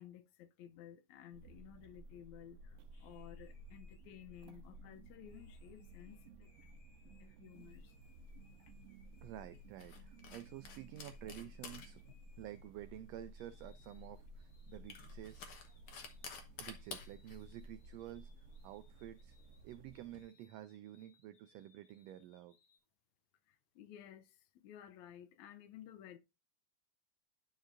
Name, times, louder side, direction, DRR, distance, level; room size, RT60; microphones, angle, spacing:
voice 1, 0.0-2.6 3.0-6.5 7.0-7.8 23.8-24.3 24.6-26.2, left 11 dB, 75° left, 2.0 m, -55 dB
sound 1, 1.3-20.1, right 1 dB, 70° right, 1.7 m, -56 dB
sound 2, 2.9-9.7 10.1-13.0 13.3-22.8, left 4 dB, 35° left, 2.1 m, -73 dB
sound 3, 7.6-20.2, left 5 dB, 60° left, 1.8 m, -55 dB
voice 2, 9.2-12.0 12.4-15.4 16.6-19.4 19.6-22.6, right 13 dB, 85° right, 1.4 m, -51 dB
11.5 x 5.1 x 2.5 m
omnidirectional pair, 3.5 m